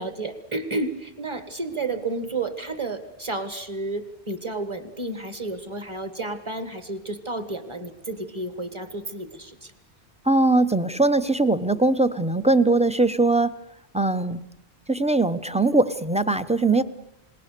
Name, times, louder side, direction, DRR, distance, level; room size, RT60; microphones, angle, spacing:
voice 1, 0.0-9.7, right 2 dB, 25° right, 10 dB, 1.7 m, -31 dB
voice 2, 10.3-13.5 13.9-14.4 14.9-16.8, right 2 dB, 5° right, 11 dB, 0.6 m, -21 dB
27.5 x 20.0 x 6.7 m, 0.82 s
omnidirectional pair, 1.1 m